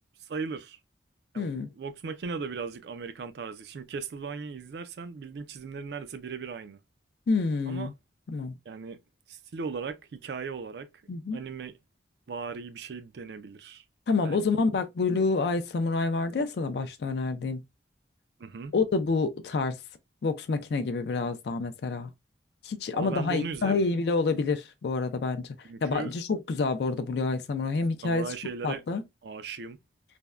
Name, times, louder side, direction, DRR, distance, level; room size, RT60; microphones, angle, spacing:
voice 1, 0.3-0.8 1.3-6.8 7.7-7.9 8.7-9.0 9.3-11.8 12.3-13.8 14.2-14.4 18.4-18.7 22.9-23.9 25.6-26.1 28.0-28.8 29.2-29.8, right 5 dB, 65° right, 0.4 m, -37 dB
voice 2, 1.4-1.7 7.3-7.9 8.3-8.6 11.1-11.4 14.1-17.6 18.7-19.8 20.2-22.1 22.6-25.5 25.8-28.3 28.6-29.0, left 4 dB, 65° left, 0.4 m, -28 dB
3.3 x 2.1 x 2.3 m
head